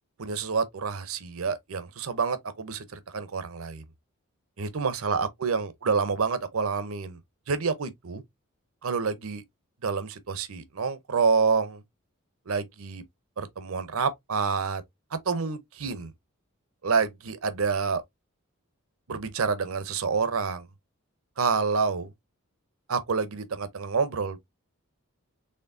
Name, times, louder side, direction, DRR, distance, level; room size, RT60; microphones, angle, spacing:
voice 1, 0.2-3.8 4.6-7.2 7.5-8.2 8.8-9.4 9.8-11.8 12.5-13.0 13.4-14.8 15.1-16.1 16.8-18.0 19.1-20.7 21.4-22.1 22.9-24.4, right 5 dB, 75° right, 0.7 m, -28 dB
4.4 x 3.1 x 2.5 m
head